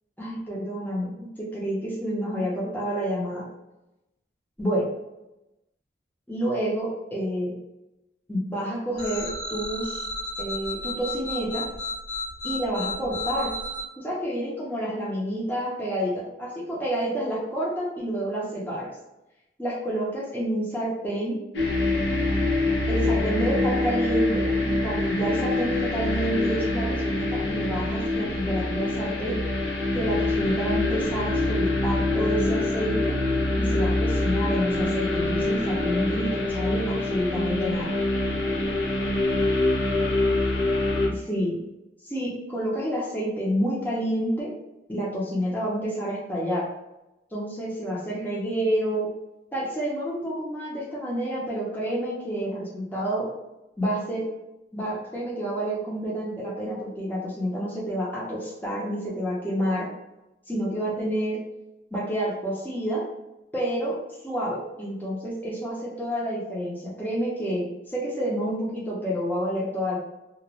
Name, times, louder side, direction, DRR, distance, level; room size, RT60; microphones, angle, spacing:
voice 1, 0.2-3.4 4.6-4.9 6.3-7.5 8.3-10.0 10.4-11.7 12.4-13.5 14.0-18.9 19.6-21.4 22.9-29.4 29.9-33.2 33.6-37.9 41.1-41.6 42.0-44.5 44.9-46.7 47.3-49.1 49.5-53.3 53.8-54.3 54.7-59.9 60.5-61.4 61.9-63.0 63.5-64.0 64.2-70.0, equal, 10° left, -6 dB, 0.6 m, -29 dB
sound 1, 9.0-13.8, left 2 dB, 65° left, 1.1 m, -33 dB
sound 2, 21.5-41.1, left 2 dB, 85° left, 0.7 m, -25 dB
2.5 x 2.1 x 3.0 m, 0.93 s
head